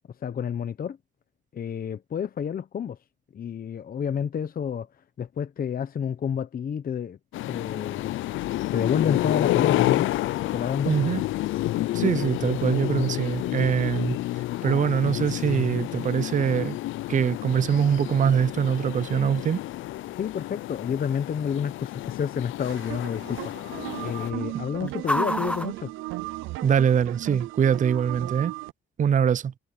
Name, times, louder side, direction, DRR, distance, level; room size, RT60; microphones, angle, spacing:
voice 1, 0.2-1.0 1.5-3.0 3.3-4.9 5.2-7.2 7.5-8.1 8.7-10.1 10.5-11.0 20.2-25.9, left 8 dB, 45° left, 1.0 m, -29 dB
sound 1, 7.3-24.3, left 16 dB, 80° left, 0.5 m, -29 dB
voice 2, 10.9-11.2 11.9-14.2 14.6-16.8 17.1-19.6 26.6-28.5 29.0-29.5, right 8 dB, 40° right, 0.5 m, -23 dB
sound 2, 12.1-26.9, left 1 dB, 5° left, 1.4 m, -40 dB
sound 3, 22.7-28.7, right 18 dB, 90° right, 0.6 m, -36 dB
cardioid pair, 90°, 20 cm